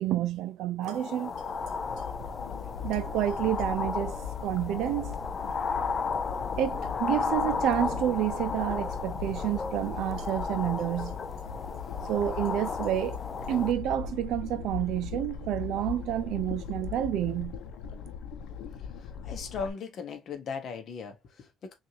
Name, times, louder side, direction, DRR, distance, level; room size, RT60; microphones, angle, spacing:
voice 1, 0.0-1.3 2.8-4.1 4.4-5.2 6.6-11.2 12.1-13.2 13.5-17.5, right 12 dB, 80° right, 0.6 m, -29 dB
sound 1, 0.8-13.7, left 5 dB, 30° left, 0.5 m, -34 dB
sound 2, 1.3-19.7, left 7 dB, 85° left, 0.8 m, -39 dB
voice 2, 19.0-21.7, left 5 dB, 50° left, 1.0 m, -38 dB
6.0 x 2.6 x 2.8 m
cardioid pair, 155°, 0 cm